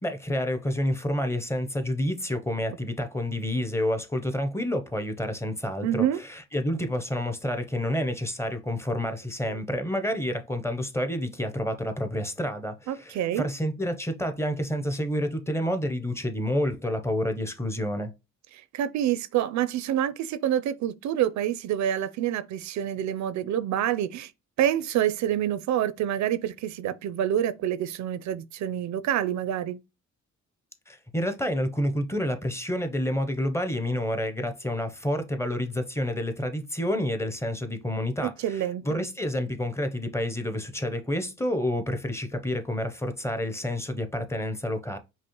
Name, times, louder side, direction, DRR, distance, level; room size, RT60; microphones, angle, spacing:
voice 1, 0.0-18.1 30.9-45.0, left 1 dB, 10° left, 0.6 m, -29 dB
voice 2, 5.8-6.2 9.5-9.6 12.9-13.5 18.5-24.3 24.6-29.8 38.4-39.0, right 11 dB, 70° right, 0.4 m, -27 dB
5.2 x 2.1 x 3.0 m
cardioid pair, 90°, 30 cm